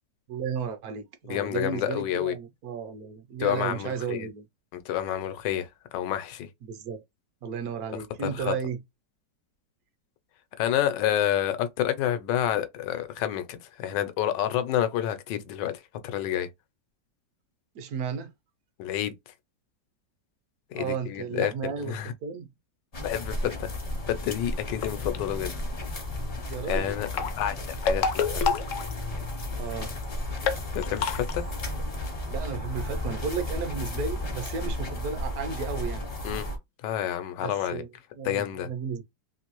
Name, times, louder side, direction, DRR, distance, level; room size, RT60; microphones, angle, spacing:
voice 1, 0.3-4.5 6.6-7.0 7.4-8.8 17.7-18.3 20.7-22.5 26.5-26.9 29.6-30.0 32.3-36.1 37.4-37.9 38.1-39.0, right 6 dB, 70° right, 1.0 m, -34 dB
voice 2, 1.2-2.3 3.4-4.3 4.7-6.5 8.5-8.6 10.6-15.7 16.0-16.5 18.8-19.1 20.7-22.1 23.0-23.7 24.1-25.5 26.7-27.1 27.4-27.5 27.8-28.4 30.7-31.4 36.2-36.4 36.8-37.8 38.2-38.7, left 11 dB, 85° left, 1.3 m, -29 dB
sound 1, 22.9-36.6, left 1 dB, 40° left, 0.5 m, -33 dB
sound 2, 24.7-25.2 26.9-29.4 29.7-29.8 30.0-30.1 30.4-31.3, left 6 dB, 70° left, 0.7 m, -28 dB
3.1 x 2.6 x 2.9 m
omnidirectional pair, 1.9 m